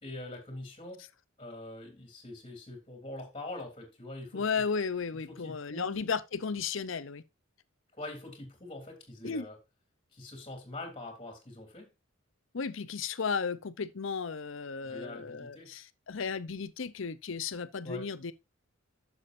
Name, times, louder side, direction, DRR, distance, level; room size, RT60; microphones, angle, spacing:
voice 1, 0.0-1.1 1.4-4.4 5.3-6.0 7.9-9.6 10.1-11.9 14.8-15.7 17.8-18.1, left 2 dB, 25° left, 3.3 m, -44 dB
voice 2, 4.3-7.2 9.2-9.4 12.5-18.3, left 5 dB, 70° left, 0.7 m, -34 dB
11.0 x 7.2 x 2.6 m
head